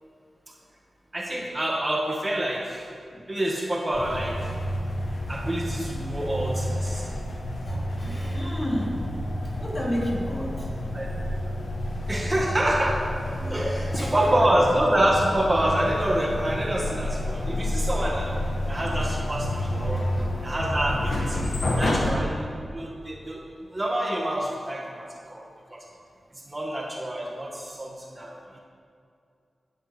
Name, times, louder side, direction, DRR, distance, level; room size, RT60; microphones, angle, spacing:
voice 1, 1.1-2.9 3.3-4.4 5.3-7.1 10.9-11.1 11.4-11.5 12.1-13.0 13.5-18.3 18.7-20.0 20.4-21.5 21.8-23.4 23.7-25.4 25.7-25.8 26.5-28.6, right 1 dB, 20° right, -2 dB, 1.7 m, -27 dB
sound 1, 3.9-22.1, left 1 dB, 70° left, 2.2 m, -29 dB
voice 2, 7.6-9.1 9.6-10.7 13.4-14.5 16.9-17.0 19.9-20.4, equal, 30° left, -4 dB, 3.5 m, -32 dB
15.0 x 11.5 x 5.2 m, 2.4 s
wide cardioid pair, 115°, 0 cm